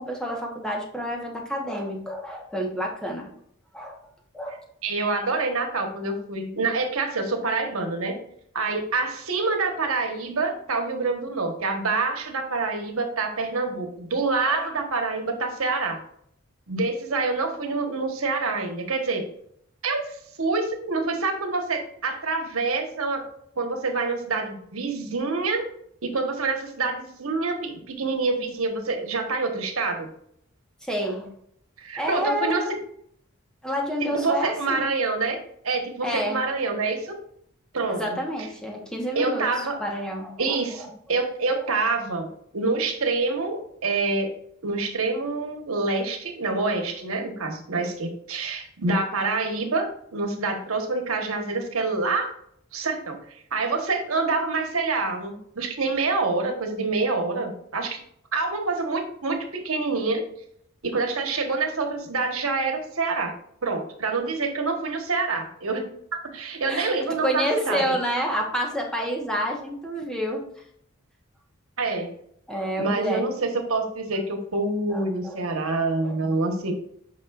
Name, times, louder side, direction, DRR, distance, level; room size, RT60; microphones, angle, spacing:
voice 1, 0.0-3.3 3.7-4.0 4.3-4.6 14.5-14.7 30.8-31.3 32.0-32.8 33.6-34.8 36.0-36.4 37.9-40.6 66.7-70.4 72.5-73.3 74.9-75.4 76.0-76.2, equal, 5° left, 0 dB, 1.2 m, -29 dB
voice 2, 4.8-8.1 8.5-16.0 16.7-19.2 19.8-23.2 23.6-25.7 26.0-30.1 31.8-32.6 34.0-35.4 35.6-37.2 37.7-38.2 39.1-39.8 40.4-42.3 42.5-44.3 44.6-52.3 52.7-53.2 53.5-58.0 58.3-60.2 60.8-63.3 63.6-65.9 66.1-67.8 71.8-72.1 72.8-76.7, right 3 dB, 85° right, 4 dB, 1.3 m, -26 dB
8.4 x 5.6 x 2.5 m, 0.69 s
head